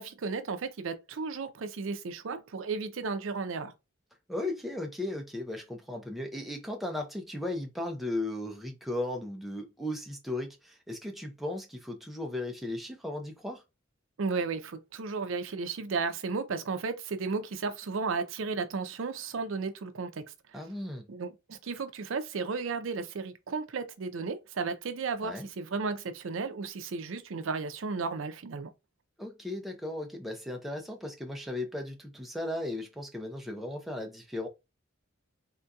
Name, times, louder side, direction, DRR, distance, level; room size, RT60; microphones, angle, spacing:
voice 1, 0.0-3.7 14.2-20.2 20.5-20.6 21.1-28.7, right 4 dB, 65° right, 0.5 m, -34 dB
voice 2, 4.3-13.6 20.5-21.1 25.2-25.5 29.2-34.5, left 1 dB, ahead, 0.5 m, -36 dB
3.6 x 2.7 x 2.3 m
head